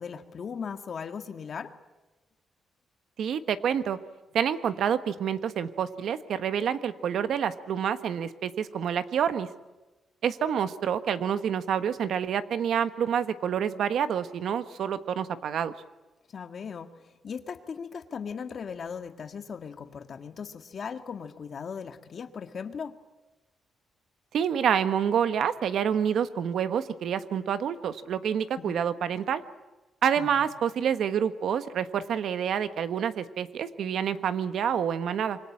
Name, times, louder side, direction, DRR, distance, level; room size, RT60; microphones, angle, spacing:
voice 1, 0.0-1.7 16.3-23.0 28.6-28.8 30.2-30.5, left 6 dB, 50° left, 8 dB, 1.8 m, -38 dB
voice 2, 3.2-4.0 4.3-9.5 10.2-15.7 24.3-29.4 30.0-35.4, right 8 dB, 70° right, 12 dB, 1.4 m, -28 dB
26.5 x 24.0 x 8.6 m, 1.1 s
cardioid pair, 115°, 0 cm